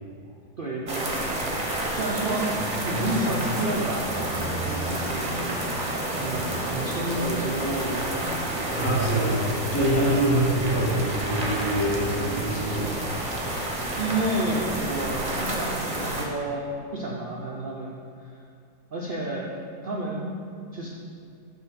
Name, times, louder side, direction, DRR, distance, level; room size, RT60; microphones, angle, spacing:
voice 1, 0.6-2.6 2.8-5.7 6.2-8.2 13.5-17.9 18.2-18.3 18.9-19.5 19.8-20.4 20.7-20.9, right 1 dB, 90° right, -4 dB, 0.4 m, -31 dB
sound 1, 0.9-16.3, right 1 dB, 40° right, 0.6 m, -30 dB
sound 2, 2.1-15.2, left 1 dB, 80° left, 2.3 m, -38 dB
voice 2, 8.7-13.0, right 1 dB, 50° left, -7 dB, 1.9 m, -25 dB
8.0 x 2.9 x 5.9 m, 2.4 s
omnidirectional pair, 1.8 m